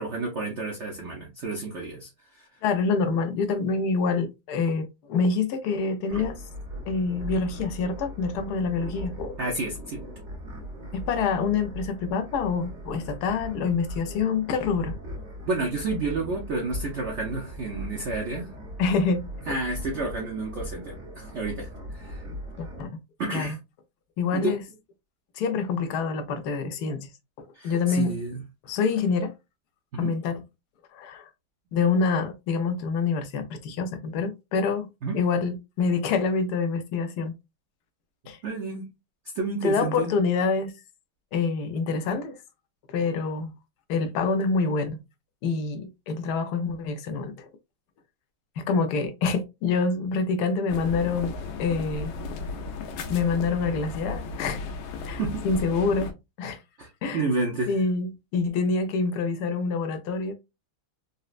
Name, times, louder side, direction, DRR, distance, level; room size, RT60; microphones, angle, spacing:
voice 1, 0.0-2.5 6.1-6.3 9.4-10.0 15.4-18.5 19.5-22.2 23.2-23.6 24.3-24.5 27.5-28.4 29.9-30.1 35.0-35.2 38.4-38.9 39.3-40.1 55.2-55.4 56.8-57.7, right 3 dB, 75° right, 0.6 m, -30 dB
voice 2, 2.6-6.4 6.9-9.3 10.9-15.0 18.8-19.2 22.6-22.9 23.3-23.5 24.2-24.6 25.4-27.1 27.6-28.1 28.7-29.3 30.0-30.4 30.9-31.3 31.7-34.9 35.1-37.3 38.3-38.4 39.6-40.7 41.3-42.4 42.9-43.5 43.9-45.0 45.4-47.5 48.6-52.1 53.1-54.6 55.1-56.1 56.4-56.6 57.0-57.2 57.7-60.3, left 4 dB, 70° left, 1.0 m, -26 dB
sound 1, 6.1-22.8, equal, 45° right, 1.1 m, -39 dB
sound 2, 50.7-56.1, left 4 dB, 90° left, 1.5 m, -35 dB
4.1 x 2.1 x 2.4 m
omnidirectional pair, 2.1 m